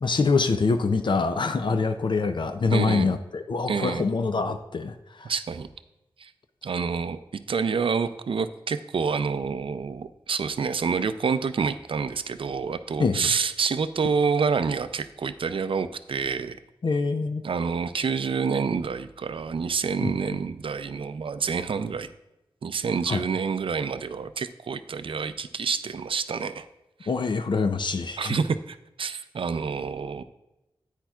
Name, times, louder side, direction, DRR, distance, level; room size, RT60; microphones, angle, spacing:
voice 1, 0.0-5.3 13.0-13.3 16.8-17.4 20.0-20.1 23.1-23.2 27.1-28.4, left 4 dB, 60° left, 8 dB, 0.5 m, -25 dB
voice 2, 2.7-3.2 3.7-4.1 5.2-5.7 6.2-6.3 6.6-7.2 7.5-16.6 17.4-22.1 22.6-26.7 27.0-27.1 28.2-30.2, right 5 dB, 75° right, 12 dB, 0.4 m, -28 dB
10.0 x 9.0 x 2.4 m, 0.93 s
wide cardioid pair, 105°, 9 cm